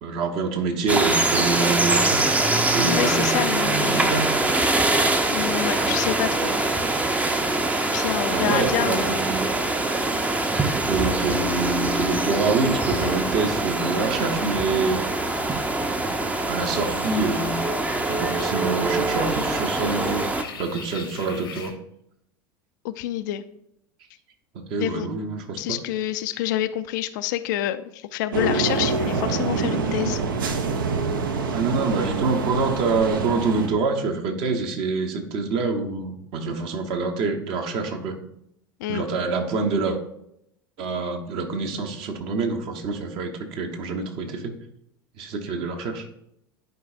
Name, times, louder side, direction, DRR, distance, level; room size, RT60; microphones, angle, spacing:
voice 1, 0.0-2.3 2.7-4.3 8.3-9.5 10.9-15.0 16.5-17.6 18.1-20.3 20.6-21.7 24.5-25.8 31.5-38.2 38.9-40.0 40.8-44.5 45.2-46.0, right 4 dB, 45° right, 3 dB, 1.0 m, -26 dB
sound 1, 0.9-20.4, right 2 dB, 10° right, 0.6 m, -23 dB
voice 2, 2.9-4.2 5.3-6.5 7.9-9.2 22.8-23.4 24.8-25.1 25.6-30.2 30.5-30.7 38.8-39.1, left 13 dB, 55° left, 12 dB, 0.4 m, -27 dB
sound 2, 16.6-21.7, left 5 dB, 75° left, 1.0 m, -42 dB
sound 3, 28.3-33.7, right 4 dB, 65° right, 0.7 m, -26 dB
10.5 x 4.7 x 2.5 m, 0.77 s
figure-of-eight pair, 75°, 12 cm